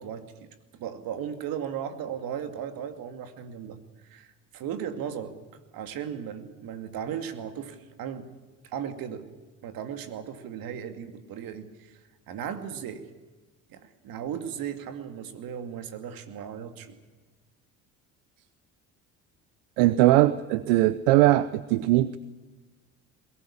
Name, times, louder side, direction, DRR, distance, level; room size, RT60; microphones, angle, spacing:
voice 1, 0.0-5.4 5.7-8.3 8.6-9.3 9.6-12.0 12.3-13.1 13.7-17.0, right 8 dB, 65° right, 8 dB, 2.5 m, -36 dB
voice 2, 19.8-22.2, right 16 dB, 80° right, 16 dB, 0.8 m, -20 dB
21.5 x 18.5 x 8.7 m, 1.2 s
hypercardioid pair, 70°, 38 cm